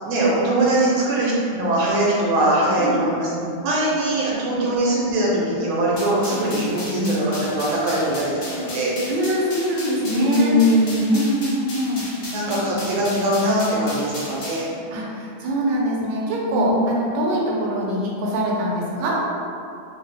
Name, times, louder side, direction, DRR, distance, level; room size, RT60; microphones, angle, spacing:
voice 1, 0.0-8.9 10.0-11.1 12.2-14.7 16.5-16.7, right 1 dB, 85° right, -5 dB, 1.6 m, -21 dB
sound 1, 6.0-14.7, left 1 dB, 80° left, 1.7 m, -35 dB
voice 2, 9.1-10.6 11.1-12.1 12.5-12.6 14.9-19.2, right 1 dB, 70° right, -3 dB, 1.3 m, -23 dB
3.8 x 2.4 x 3.3 m, 2.5 s
omnidirectional pair, 2.2 m